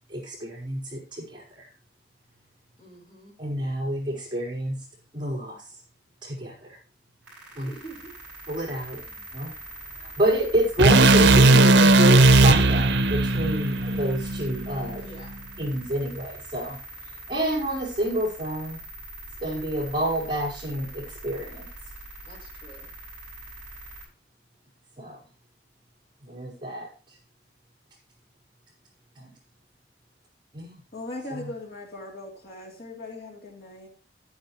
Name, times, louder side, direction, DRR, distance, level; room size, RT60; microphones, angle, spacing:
voice 1, 0.1-1.7 3.4-4.8 5.1-5.6 6.2-6.8 7.6-7.7 8.5-9.0 9.3-9.5 10.0-15.0 15.6-16.8 17.3-18.8 19.4-21.7 25.0-25.2 26.2-26.9 29.2-29.3 30.5-30.8 31.3-31.5, right 1 dB, 25° right, -4 dB, 4.8 m, -28 dB
voice 2, 2.8-3.3 7.6-8.1 8.9-9.3 14.9-15.3 22.2-22.9, right 2 dB, 30° left, -1 dB, 4.3 m, -47 dB
sound 1, 7.2-24.0, right 1 dB, 5° right, 7.0 m, -43 dB
sound 2, 10.8-15.0, right 2 dB, 80° right, 0.7 m, -17 dB
voice 3, 30.9-33.9, left 2 dB, 55° left, -2 dB, 3.2 m, -39 dB
12.0 x 10.5 x 3.2 m, 0.36 s
head